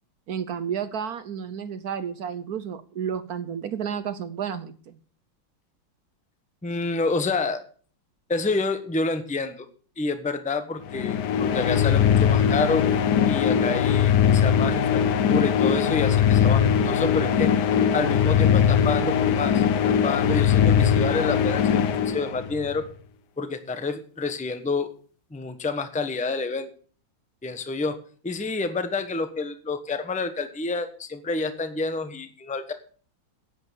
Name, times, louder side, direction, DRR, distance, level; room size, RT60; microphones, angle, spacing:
voice 1, 0.3-5.0, right 8 dB, 60° right, 13 dB, 1.1 m, -31 dB
voice 2, 6.6-7.6 8.3-9.7 10.0-12.9 13.3-15.0 15.3-17.5 17.9-22.9 23.4-24.9 25.3-26.7 27.4-28.0 28.2-32.7, left 3 dB, 5° left, 9 dB, 0.7 m, -28 dB
sound 1, 10.9-22.7, left 8 dB, 65° left, 1.2 m, -21 dB
10.5 x 8.8 x 7.0 m, 0.43 s
omnidirectional pair, 2.1 m